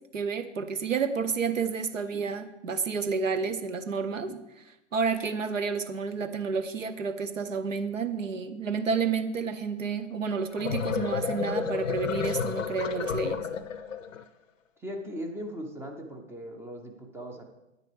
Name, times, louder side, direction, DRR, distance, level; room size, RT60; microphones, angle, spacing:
voice 1, 0.1-4.6 4.9-13.4, right 5 dB, 80° right, 11 dB, 0.9 m, -30 dB
sound 1, 10.4-14.2, left 6 dB, 80° left, 0.7 m, -31 dB
voice 2, 14.8-17.4, equal, 5° right, 3 dB, 0.5 m, -38 dB
9.7 x 8.6 x 3.4 m, 0.95 s
figure-of-eight pair, 110°, 38 cm